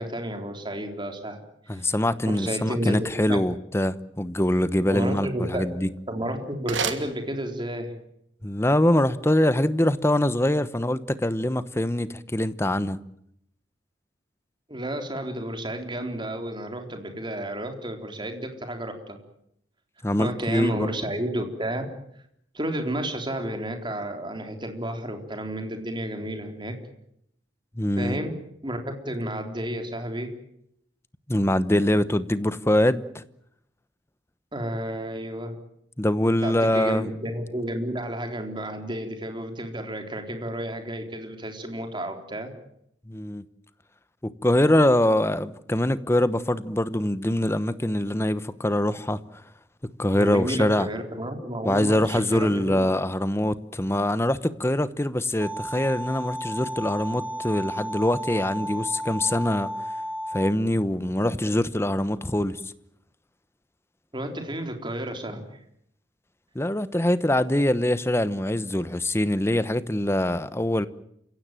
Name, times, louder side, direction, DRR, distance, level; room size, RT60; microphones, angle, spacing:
voice 1, 0.0-1.4 1.7-1.9 2.2-3.4 4.9-5.6 6.1-7.9 14.7-19.2 20.2-21.8 22.5-26.8 28.0-30.3 34.5-35.6 36.4-42.5 50.2-52.9 64.1-65.6, right 1 dB, 25° right, 3.8 m, -31 dB
voice 2, 1.7-5.9 8.4-13.0 20.0-20.9 27.8-28.2 31.3-33.2 36.0-37.1 43.1-43.4 44.2-49.4 50.0-50.9 51.6-59.7 60.3-62.6 66.5-70.9, left 1 dB, 15° left, 1.0 m, -24 dB
sound 1, 5.8-7.9, right 6 dB, 80° right, 2.8 m, -34 dB
sound 2, 55.4-60.5, equal, 10° right, 1.9 m, -33 dB
29.0 x 16.5 x 9.1 m
head